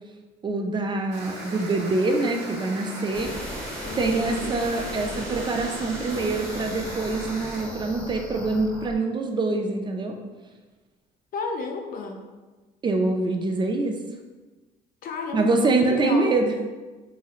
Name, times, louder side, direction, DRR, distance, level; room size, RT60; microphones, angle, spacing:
voice 1, 0.4-3.3 4.0-10.2 12.8-14.0 15.3-16.5, right 3 dB, 25° right, 3 dB, 0.3 m, -25 dB
sound 1, 1.1-7.6, right 1 dB, 75° right, 0.9 m, -38 dB
sound 2, 3.1-9.0, equal, 10° left, 0.8 m, -38 dB
voice 2, 3.8-4.5 11.3-12.2 15.0-16.4, left 4 dB, 55° left, 3 dB, 0.5 m, -32 dB
3.6 x 3.0 x 2.4 m, 1.2 s
cardioid pair, 110°, 17 cm